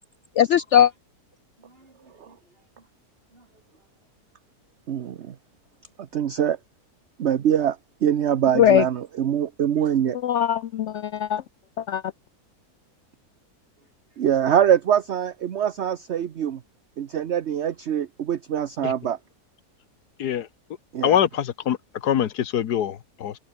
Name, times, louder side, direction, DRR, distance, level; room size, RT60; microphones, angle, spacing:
voice 1, 0.4-0.9 8.5-8.8 10.2-11.4 11.8-12.0, left 10 dB, 65° left, 0.8 m, -19 dB
voice 2, 1.6-2.9 3.3-3.9 13.8-14.2, right 1 dB, 35° right, 5.8 m, -59 dB
voice 3, 4.9-5.4 6.0-6.6 7.2-10.2 14.2-16.6 17.0-19.2 20.9-21.2, right 9 dB, 50° right, 1.0 m, -23 dB
voice 4, 21.0-23.4, left 10 dB, 85° left, 1.6 m, -24 dB
omnidirectional pair, 1.7 m